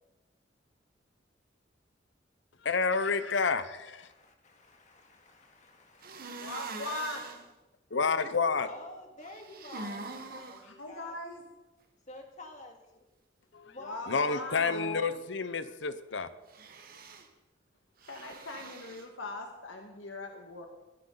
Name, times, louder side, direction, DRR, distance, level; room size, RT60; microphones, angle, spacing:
voice 1, 2.6-4.1 7.9-8.7 13.5-13.8 14.1-16.3, left 4 dB, 65° left, 13 dB, 0.8 m, -29 dB
voice 2, 3.9-6.7 8.7-11.2 12.1-13.1 13.6-14.6, left 2 dB, 40° left, 3 dB, 2.1 m, -50 dB
sound 1, 6.0-7.4 9.2-10.6 16.5-17.3 18.0-19.0, right 4 dB, 50° right, 1.4 m, -43 dB
voice 3, 6.4-7.2 10.6-11.4 13.8-15.1 18.0-20.7, left 2 dB, 90° left, 3 dB, 1.7 m, -40 dB
22.0 x 11.5 x 4.0 m, 1.1 s
head